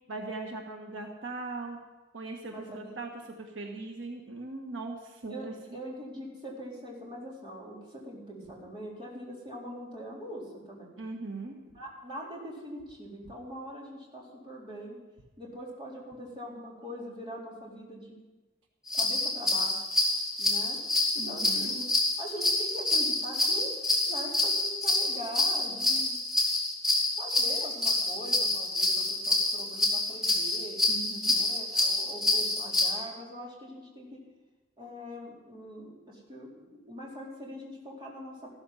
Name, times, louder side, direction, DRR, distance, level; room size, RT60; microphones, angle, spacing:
voice 1, 0.1-1.8 2.1-5.8 11.0-11.6 21.2-21.8 30.9-31.4, right 3 dB, 75° right, 2 dB, 1.5 m, -39 dB
voice 2, 2.5-2.9 5.3-11.0 11.7-15.0 15.4-18.1 18.9-19.8 20.4-20.8 21.1-21.9 22.2-23.7 24.0-26.2 27.2-30.8 31.2-34.2 34.8-38.5, equal, 25° right, -4 dB, 4.0 m, -42 dB
sound 1, 18.9-32.9, left 2 dB, 5° right, 3.5 m, -27 dB
14.5 x 13.5 x 5.7 m, 1.1 s
head